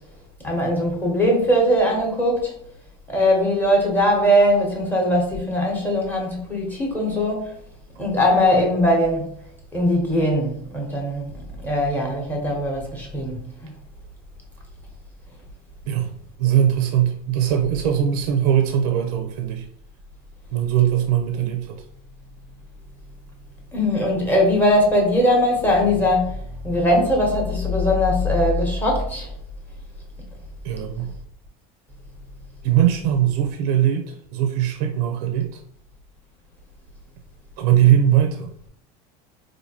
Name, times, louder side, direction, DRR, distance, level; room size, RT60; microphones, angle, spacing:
voice 1, 0.4-2.5 3.1-7.5 8.0-9.3 9.7-11.3 11.6-13.7 23.7-26.4 26.6-29.3, left 1 dB, 10° left, -1 dB, 0.8 m, -20 dB
voice 2, 16.4-19.7 20.5-21.8 30.6-31.2 32.6-35.6 37.6-38.5, right 10 dB, 85° right, 5 dB, 0.5 m, -20 dB
4.3 x 2.6 x 2.8 m, 0.69 s
cardioid pair, 170°, 19 cm